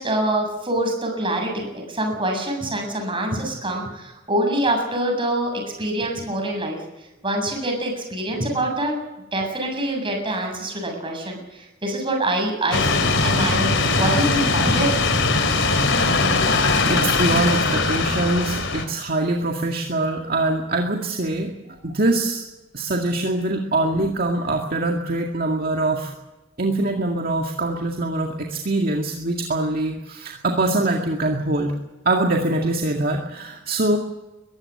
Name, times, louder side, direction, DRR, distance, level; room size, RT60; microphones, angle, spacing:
voice 1, 0.0-6.8 7.2-8.9 9.3-14.9, right 1 dB, 25° right, 2 dB, 7.6 m, -25 dB
sound 1, 12.7-18.8, left 3 dB, 70° left, 3.2 m, -20 dB
voice 2, 16.9-22.4 22.7-26.1 26.6-31.7 32.1-34.0, right 2 dB, 50° right, 1 dB, 2.0 m, -23 dB
22.5 x 14.5 x 9.7 m, 1.0 s
head